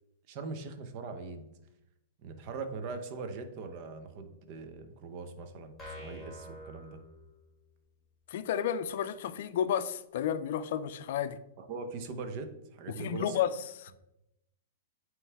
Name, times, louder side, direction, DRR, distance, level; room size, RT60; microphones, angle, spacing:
voice 1, 0.3-1.5 2.2-7.0 11.6-13.4, right 4 dB, 40° right, 7 dB, 0.8 m, -41 dB
sound 1, 5.8-7.7, left 1 dB, 5° left, 1.9 m, -47 dB
voice 2, 8.3-11.4 12.9-13.9, left 9 dB, 60° left, 13 dB, 0.4 m, -32 dB
9.0 x 3.1 x 3.4 m, 0.87 s
hypercardioid pair, 150°, 0 cm